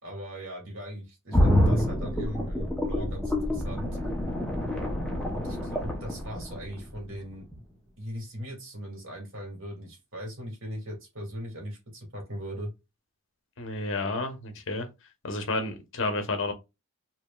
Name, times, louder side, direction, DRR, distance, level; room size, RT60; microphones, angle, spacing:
voice 1, 0.0-4.0 5.3-7.5 8.0-12.7, equal, 60° right, 2.3 m, -39 dB
sound 1, 1.3-7.1 7.5-7.6, left 1 dB, 5° left, 0.8 m, -27 dB
voice 2, 13.6-14.9 15.2-16.5, left 2 dB, 60° left, 0.9 m, -30 dB
4.8 x 3.0 x 2.4 m
head